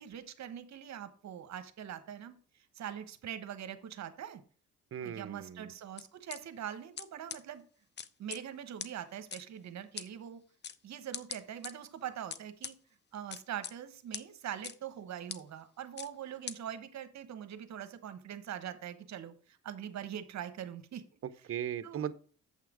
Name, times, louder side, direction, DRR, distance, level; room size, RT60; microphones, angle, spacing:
voice 1, 0.0-2.4 2.7-4.4 5.0-7.6 8.2-10.4 10.8-12.7 13.1-21.0 21.8-22.0, right 9 dB, 65° right, 11 dB, 1.1 m, -43 dB
voice 2, 4.9-5.7 21.2-22.1, right 9 dB, 45° right, 13 dB, 0.8 m, -38 dB
sound 1, 6.0-6.4 7.0-7.1 7.3-7.4 8.0-8.4 8.8-8.9 9.3-9.4 10.0-10.1 10.6-10.8 11.1-11.7 12.3-12.7 13.3-13.7 14.1-14.2 14.6-14.7 15.3-15.4 16.0-16.1 16.5-16.6, left 7 dB, 35° left, 0.6 m, -40 dB
7.9 x 5.8 x 4.8 m, 0.42 s
cardioid pair, 90°, 30 cm